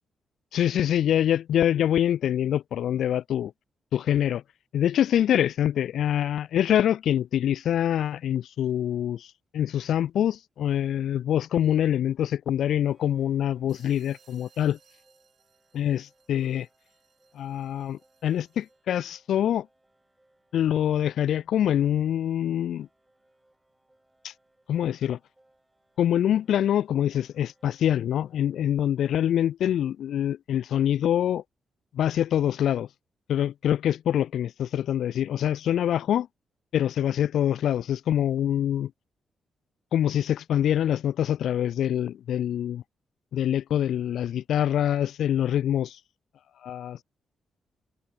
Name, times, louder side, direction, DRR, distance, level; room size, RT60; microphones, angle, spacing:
voice 1, 0.5-3.5 3.9-4.4 4.7-14.8 15.7-16.7 17.3-19.7 20.5-22.9 24.2-24.3 24.7-25.2 26.0-31.4 31.9-32.9 33.3-36.3 36.7-38.9 39.9-42.8 43.3-46.0 46.6-47.0, left 10 dB, 75° left, 0.3 m, -25 dB
sound 1, 10.1-10.2 12.7-28.5, right 1 dB, 10° right, 4.4 m, -66 dB
sound 2, 13.7-18.9, right 7 dB, 55° right, 3.5 m, -64 dB
cardioid pair, 125°, 0 cm